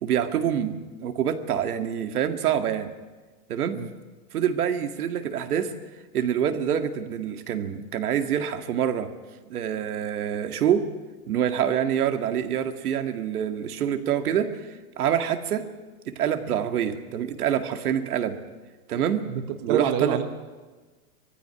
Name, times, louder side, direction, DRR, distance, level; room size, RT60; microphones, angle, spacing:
voice 1, 0.0-2.9 3.5-3.8 4.3-5.7 6.1-9.1 9.5-10.9 11.3-15.7 16.1-18.4 18.9-19.3 19.6-20.2, right 9 dB, 75° right, 7 dB, 2.1 m, -26 dB
voice 2, 19.3-20.2, right 9 dB, 20° right, 7 dB, 0.9 m, -26 dB
21.0 x 15.0 x 10.0 m, 1.3 s
supercardioid pair, 175°, 45 cm